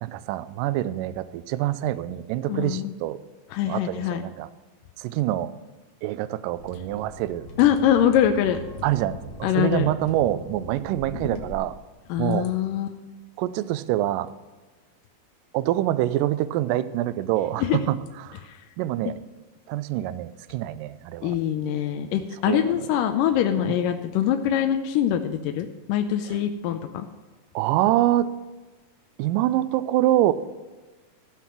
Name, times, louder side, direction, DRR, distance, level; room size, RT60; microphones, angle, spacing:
voice 1, 0.0-3.2 3.7-4.5 5.0-5.5 6.0-7.5 8.8-11.8 12.2-12.5 13.4-14.3 15.5-18.0 18.3-18.4 18.8-19.1 19.7-21.3 22.5-22.7 23.6-23.8 27.6-28.3 29.2-30.3, right 14 dB, 80° right, 15 dB, 2.1 m, -25 dB
voice 2, 2.5-2.9 3.5-4.2 7.6-8.6 9.4-9.9 12.1-13.0 17.6-17.8 18.4-18.6 21.2-27.1, left 10 dB, 80° left, 6 dB, 2.2 m, -23 dB
sound 1, 6.5-11.5, equal, 50° left, 1.9 m, -40 dB
14.5 x 6.1 x 5.9 m, 1.3 s
omnidirectional pair, 4.0 m